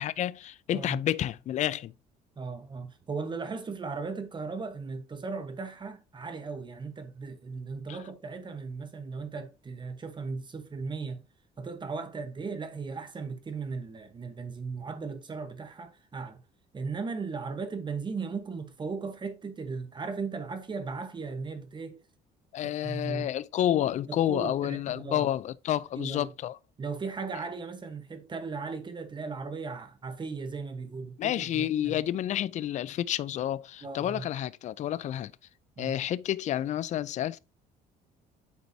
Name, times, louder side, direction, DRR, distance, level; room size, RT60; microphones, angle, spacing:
voice 1, 0.0-1.9 7.9-8.0 22.5-26.6 31.2-35.3 35.8-37.4, left 11 dB, 45° left, 0.4 m, -30 dB
voice 2, 2.4-11.2 11.6-16.4 16.7-22.0 22.6-23.3 24.1-25.3 25.9-26.3 26.8-32.0 33.8-34.3 35.8-35.9, right 4 dB, 25° right, 1.1 m, -37 dB
8.1 x 4.5 x 2.7 m
cardioid pair, 110°, 17 cm